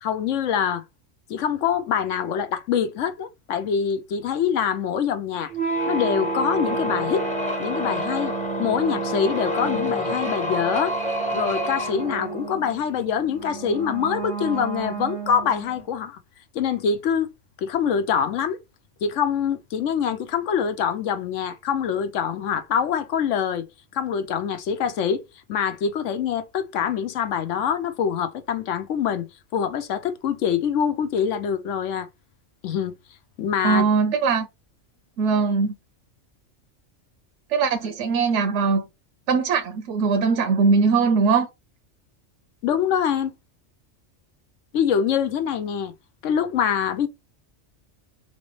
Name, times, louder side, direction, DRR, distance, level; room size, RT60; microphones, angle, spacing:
voice 1, 0.0-0.8 1.3-5.5 5.9-7.2 7.6-8.3 8.6-10.9 11.3-16.2 16.5-17.3 17.6-18.6 19.0-23.7 23.9-25.2 25.5-29.3 29.5-32.1 32.6-33.0 33.4-33.8 42.6-43.3 44.7-45.9 46.2-47.1, left 7 dB, 90° left, 1.0 m, -24 dB
sound 1, 5.5-15.8, right 1 dB, 10° left, 0.7 m, -28 dB
voice 2, 33.6-34.5 35.2-35.7 37.5-38.9 39.3-41.5, right 5 dB, 80° right, 0.9 m, -20 dB
4.2 x 3.2 x 3.1 m
omnidirectional pair, 1.2 m